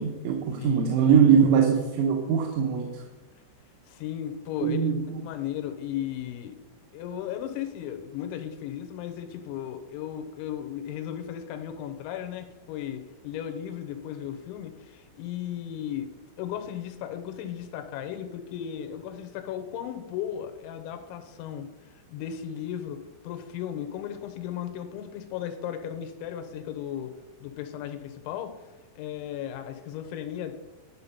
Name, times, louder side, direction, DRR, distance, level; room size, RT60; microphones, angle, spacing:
voice 1, 0.0-3.0 4.6-5.2, right 7 dB, 85° right, 2 dB, 3.5 m, -22 dB
voice 2, 0.6-1.0 3.9-4.8 5.2-6.5 6.9-16.1 16.4-21.7 22.1-27.1 27.4-28.5 29.0-30.5, left 10 dB, 80° left, 6 dB, 3.2 m, -35 dB
11.5 x 5.6 x 5.6 m, 1.3 s
omnidirectional pair, 5.6 m